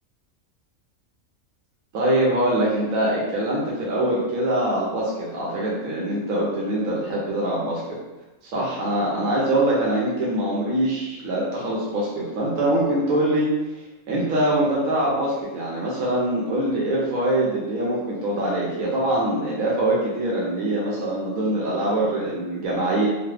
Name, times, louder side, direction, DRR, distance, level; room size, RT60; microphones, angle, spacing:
voice 1, 1.9-7.8 8.5-13.5 14.1-23.1, right 1 dB, 90° right, -5 dB, 1.1 m, -23 dB
3.0 x 2.2 x 3.2 m, 1.1 s
omnidirectional pair, 1.4 m